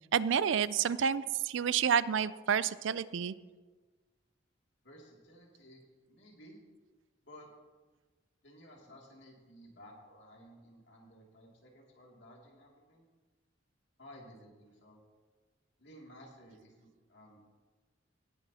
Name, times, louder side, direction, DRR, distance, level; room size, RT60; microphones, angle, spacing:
voice 1, 0.1-3.3, right 7 dB, 75° right, 17 dB, 0.4 m, -29 dB
voice 2, 4.8-6.6 7.2-7.5 8.4-13.1 14.0-15.0 15.8-17.5, equal, 65° left, -1 dB, 2.6 m, -55 dB
18.5 x 10.0 x 2.8 m, 1.3 s
head